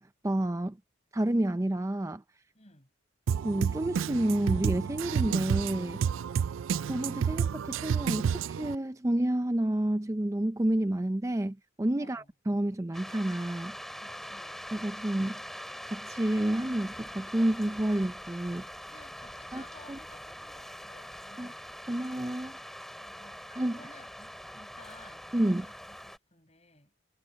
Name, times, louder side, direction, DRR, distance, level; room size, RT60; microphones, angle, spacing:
voice 1, 0.2-0.8 1.1-2.2 3.4-6.0 6.9-13.8 14.7-15.4 15.9-18.7 19.5-19.6 19.9-20.0 21.4-21.5 21.9-22.6 23.6-23.8 25.3-25.6, right 1 dB, 15° right, 0.4 m, -29 dB
voice 2, 2.5-2.9 6.3-6.7 12.0-12.3 14.0-14.6 18.9-21.6 23.0-23.4 23.7-27.0, left 2 dB, 35° left, 6.8 m, -56 dB
Drum kit, 3.3-8.7, right 7 dB, 85° right, 0.4 m, -30 dB
sound 1, 12.9-26.2, equal, ahead, 3.4 m, -43 dB
head